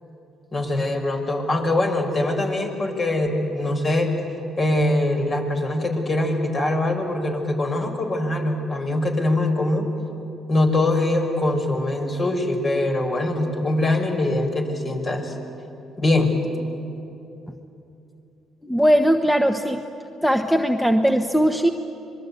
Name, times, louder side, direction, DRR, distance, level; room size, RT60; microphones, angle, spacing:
voice 1, 0.5-4.1 4.6-9.9 10.5-15.3 16.0-16.3, left 1 dB, 40° left, 3 dB, 5.4 m, -23 dB
voice 2, 18.6-19.8 20.2-21.7, equal, 5° left, 5 dB, 1.3 m, -19 dB
26.5 x 21.5 x 8.4 m, 2.8 s
hypercardioid pair, 55°, 0 cm